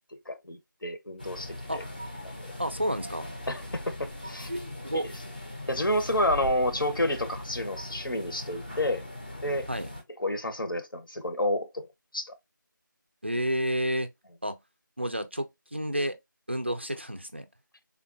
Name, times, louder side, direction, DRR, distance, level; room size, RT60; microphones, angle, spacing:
voice 1, 0.3-1.8 3.5-4.5 5.7-9.0 9.4-9.7 10.2-11.8 12.1-12.3, left 1 dB, 85° left, 0.9 m, -29 dB
sound 1, 1.2-10.0, left 1 dB, 25° left, 0.6 m, -40 dB
voice 2, 2.6-3.3 4.5-5.1 9.7-9.9 13.2-14.1 14.4-14.6 15.0-16.2 16.5-17.5, equal, 35° right, 0.3 m, -30 dB
3.6 x 2.3 x 2.3 m
figure-of-eight pair, 175°, 11 cm